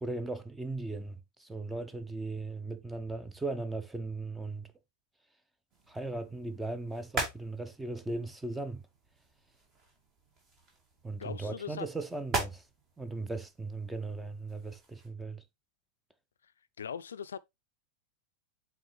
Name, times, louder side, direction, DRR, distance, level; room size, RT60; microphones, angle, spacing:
voice 1, 0.0-4.7 5.9-8.8 11.0-12.7 13.0-15.4, right 2 dB, 5° right, 0.8 m, -38 dB
sound 1, 5.7-15.1, right 2 dB, 35° right, 2.5 m, -42 dB
voice 2, 11.2-11.9 16.8-17.4, left 7 dB, 70° left, 0.4 m, -39 dB
7.7 x 4.4 x 3.2 m
figure-of-eight pair, 90°, 0 cm